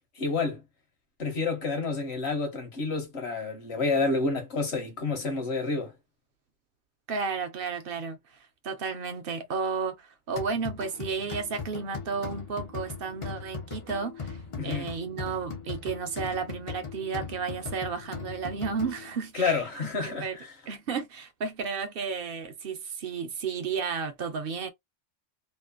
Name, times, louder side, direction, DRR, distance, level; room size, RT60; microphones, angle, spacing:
voice 1, 0.2-0.6 1.2-5.9 14.6-14.9 19.3-20.5, left 4 dB, 60° left, 1.3 m, -29 dB
voice 2, 7.1-8.2 8.6-14.4 14.6-19.6 20.0-20.4 20.7-24.7, right 5 dB, 55° right, 0.7 m, -33 dB
sound 1, 10.4-19.2, left 5 dB, 40° left, 0.5 m, -39 dB
3.1 x 2.0 x 2.3 m
omnidirectional pair, 1.3 m